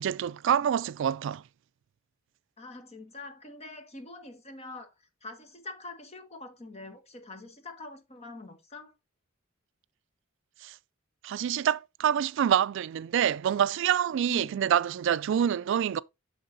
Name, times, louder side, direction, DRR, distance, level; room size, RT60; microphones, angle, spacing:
voice 1, 0.0-1.4 10.6-10.8 11.2-16.0, right 9 dB, 65° right, 0.3 m, -26 dB
voice 2, 2.6-4.9 5.2-8.9 14.3-14.7, left 2 dB, 30° left, 1.3 m, -44 dB
11.5 x 3.9 x 2.6 m
head